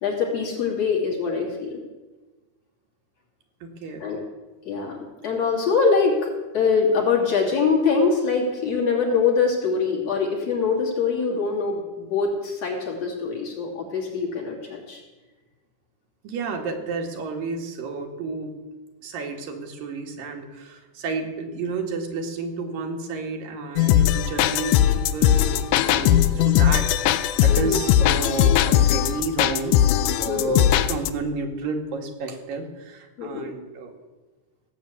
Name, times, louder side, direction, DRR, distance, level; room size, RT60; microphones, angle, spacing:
voice 1, 0.0-1.8 4.0-4.2 4.7-15.0 27.5-27.8 30.3-30.6 33.2-33.4, left 5 dB, 50° left, -2 dB, 4.0 m, -23 dB
voice 2, 3.6-4.1 16.2-18.7 19.0-29.9 30.2-33.9, right 4 dB, 90° right, 3 dB, 3.6 m, -31 dB
sound 1, 23.8-31.1, left 11 dB, 80° left, 2.0 m, -19 dB
17.5 x 8.2 x 8.2 m, 1.2 s
omnidirectional pair, 3.9 m